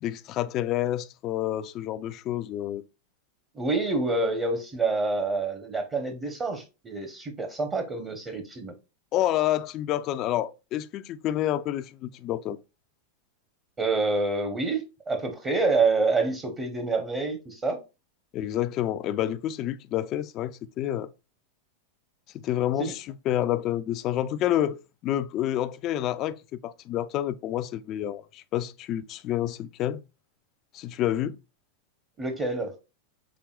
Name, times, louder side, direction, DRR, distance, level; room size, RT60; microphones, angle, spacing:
voice 1, 0.0-2.8 9.1-12.6 18.3-21.1 22.3-26.4 26.6-30.0 30.7-31.4, left 12 dB, 40° left, 0.4 m, -28 dB
voice 2, 3.5-8.7 13.8-17.8 22.8-22.9 32.2-32.8, right 3 dB, 25° right, 0.9 m, -27 dB
6.1 x 3.4 x 2.3 m
hypercardioid pair, 115°, 0 cm